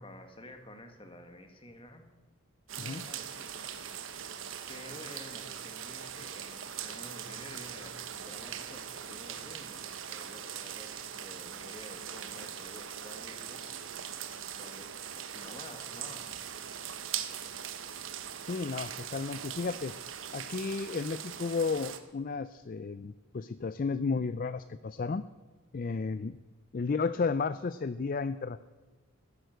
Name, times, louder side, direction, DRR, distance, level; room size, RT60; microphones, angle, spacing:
voice 1, 0.0-2.1 2.7-3.7 4.7-13.7 14.5-16.3, left 1 dB, 25° left, 6 dB, 1.8 m, -50 dB
sound 1, 2.7-22.0, right 8 dB, 65° right, 1.2 m, -41 dB
voice 2, 18.5-19.9 20.3-25.2 25.7-26.4 26.7-28.6, left 4 dB, 40° left, 14 dB, 0.4 m, -33 dB
15.5 x 11.0 x 7.8 m, 1.4 s
head